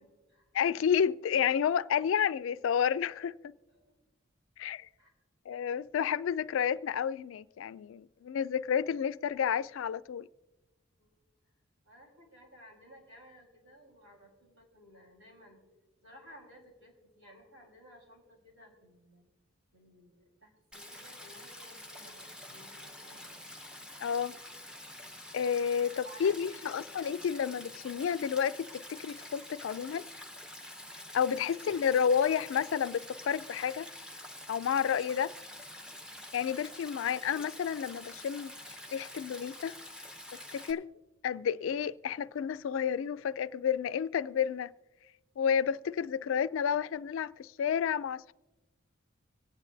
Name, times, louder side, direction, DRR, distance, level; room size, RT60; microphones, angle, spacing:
voice 1, 0.0-0.5 3.7-4.0 5.0-5.1 11.0-11.2 11.8-15.6 16.0-19.3 19.7-23.4 26.0-26.8 31.1-31.2 31.4-31.6 36.9-37.3, equal, 90° right, 4.3 m, -56 dB
voice 2, 0.5-3.5 4.6-4.9 5.5-10.3 24.0-24.4 25.3-30.1 31.1-33.9 34.5-35.3 36.3-38.6 38.9-39.8 40.3-40.9 41.2-44.7 45.4-48.3, left 7 dB, 75° left, 0.3 m, -30 dB
Stream, 20.7-40.7, left 1 dB, 5° right, 0.6 m, -47 dB
25.0 x 9.2 x 2.6 m
head